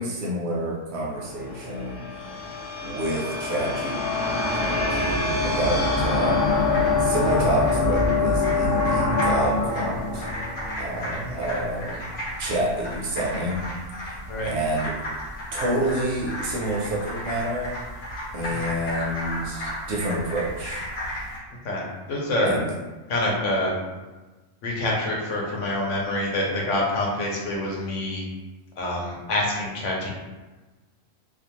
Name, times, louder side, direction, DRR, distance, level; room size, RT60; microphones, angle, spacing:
voice 1, 0.0-2.0 2.8-4.0 4.5-6.6 7.0-10.3 10.8-12.0 12.4-13.7 14.0-14.1 14.4-14.9 15.5-17.7 18.3-20.9 22.5-22.6, right 1 dB, 65° right, -3 dB, 0.8 m, -28 dB
sound 1, 1.2-11.5, left 3 dB, 30° left, 0.4 m, -25 dB
sound 2, 6.3-21.4, equal, 50° left, 0.8 m, -34 dB
voice 2, 22.1-22.5 23.1-23.7 24.6-28.2 28.8-30.1, left 1 dB, 75° left, -2 dB, 1.0 m, -26 dB
2.6 x 2.2 x 2.9 m, 1.2 s
omnidirectional pair, 1.3 m